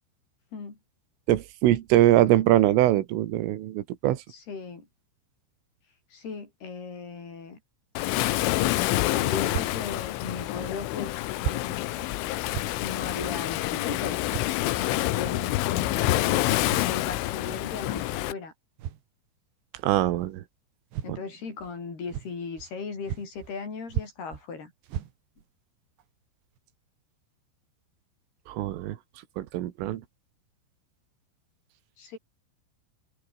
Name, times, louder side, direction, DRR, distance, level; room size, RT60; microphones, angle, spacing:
voice 1, 1.3-4.2 19.8-20.4 21.1-21.2 28.5-29.0 29.4-30.0, right 14 dB, 80° right, 4.1 m, -22 dB
voice 2, 4.3-4.9 6.1-7.6 9.0-12.0 12.8-14.2 14.8-16.4 16.8-18.5 21.0-24.7 32.0-32.2, left 5 dB, 50° left, 8.0 m, -37 dB
Waves surf, 8.0-18.3, left 17 dB, 80° left, 3.5 m, -27 dB
sound 1, 9.5-9.8 10.6-10.7 11.4-11.6 12.0-12.1 12.5-12.7 13.2-13.4 14.3-14.5 15.2-15.4 16.5-16.9 17.9-18.1 18.8-19.1 20.2-20.3 20.9-21.1 21.6-21.7 22.1-22.8 23.1-23.6 23.9-24.4 24.8-25.5 26.0-26.1 26.6-26.7, right 11 dB, 65° right, 4.1 m, -35 dB
omnidirectional pair, 5.8 m